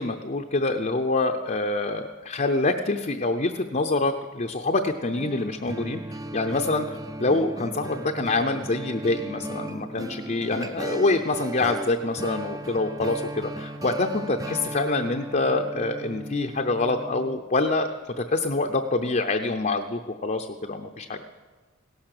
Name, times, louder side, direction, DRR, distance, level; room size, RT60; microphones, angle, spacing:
voice 1, 0.0-6.0 6.3-17.9 18.2-21.2, left 2 dB, 35° left, 4 dB, 0.7 m, -26 dB
sound 1, 5.2-17.4, right 1 dB, 15° right, 0.6 m, -36 dB
17.0 x 12.0 x 6.7 m, 1.3 s
head